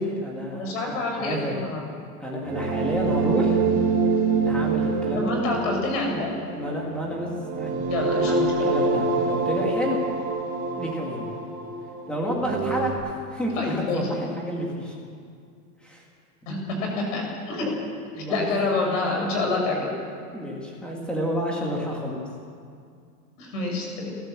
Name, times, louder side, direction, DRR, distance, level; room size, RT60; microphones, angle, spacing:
voice 1, 0.0-1.8 2.2-3.7 4.4-5.3 6.5-7.3 7.6-7.7 8.2-10.0 10.7-11.4 12.1-15.0 15.8-16.0 18.2-18.5 20.3-22.2, equal, ahead, -2 dB, 2.2 m, -30 dB
voice 2, 0.5-1.8 5.1-6.3 7.9-8.7 13.6-14.1 16.5-17.7 18.2-19.9 23.4-24.1, left 3 dB, 50° left, 0 dB, 6.6 m, -27 dB
sound 1, 2.4-12.9, right 4 dB, 25° right, 2.8 m, -26 dB
29.0 x 13.5 x 7.5 m, 2.3 s
supercardioid pair, 180°, 47 cm